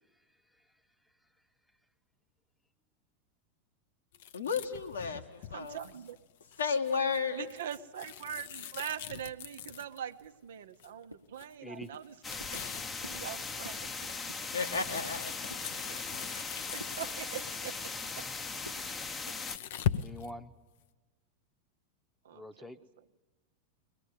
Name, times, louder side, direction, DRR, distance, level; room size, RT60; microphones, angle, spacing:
voice 1, 0.1-1.4 11.6-11.9 19.9-20.5 22.3-22.8, left 1 dB, ahead, 10 dB, 1.1 m, -48 dB
sound 1, 4.1-10.2 10.8-11.0 11.4-11.5 11.8-12.9 13.4-17.8 18.7-20.3, left 10 dB, 55° left, 0.8 m, -41 dB
voice 2, 4.3-5.8 6.6-7.4 14.5-15.3, left 5 dB, 70° left, 4 dB, 1.7 m, -33 dB
voice 3, 5.5-6.2 7.3-12.1 12.5-12.6 13.1-13.9 15.7-16.2 16.7-18.3 22.2-22.4, right 9 dB, 60° right, 9 dB, 0.9 m, -42 dB
sound 2, 10.2-10.8 11.1-11.5 11.8-12.0 12.4-12.7 13.0-13.3 13.6-13.9 14.3-14.5 14.9-15.7 16.1-16.5 16.8-17.0 17.3-18.3 18.7-18.9 19.3-19.5 19.9-20.2, equal, 90° right, 0.9 m, -51 dB
sound 3, 12.2-19.6, left 4 dB, 20° left, 0.9 m, -39 dB
22.5 x 19.5 x 9.7 m, 1.2 s
figure-of-eight pair, 90°, 0 cm